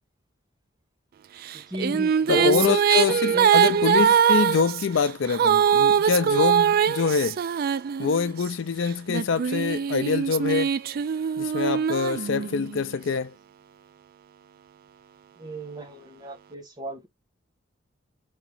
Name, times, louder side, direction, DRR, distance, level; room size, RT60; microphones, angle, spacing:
Female singing, 1.5-8.4 9.1-12.8, right 8 dB, 50° right, 0.3 m, -22 dB
voice 1, 1.7-2.8 3.3-3.5 12.4-12.5 15.4-17.1, right 1 dB, 20° right, 1.3 m, -32 dB
voice 2, 2.3-7.4 8.0-10.7 11.4-13.3, left 5 dB, 75° left, 0.5 m, -25 dB
3.9 x 3.6 x 3.0 m
head